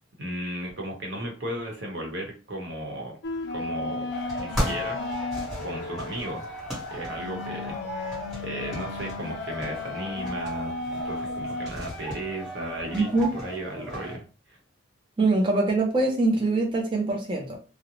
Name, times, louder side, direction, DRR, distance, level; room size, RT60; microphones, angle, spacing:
voice 1, 0.2-3.2 3.5-4.1 4.4-5.0 5.6-6.5 6.9-14.6, right 1 dB, 65° right, 0.9 m, -35 dB
sound 1, 3.2-11.7, left 3 dB, 60° left, 0.3 m, -34 dB
sound 2, 4.1-14.2, equal, ahead, 1.1 m, -36 dB
voice 2, 12.9-13.3 15.2-17.6, right 2 dB, 25° right, 0.4 m, -23 dB
2.5 x 2.0 x 2.9 m
head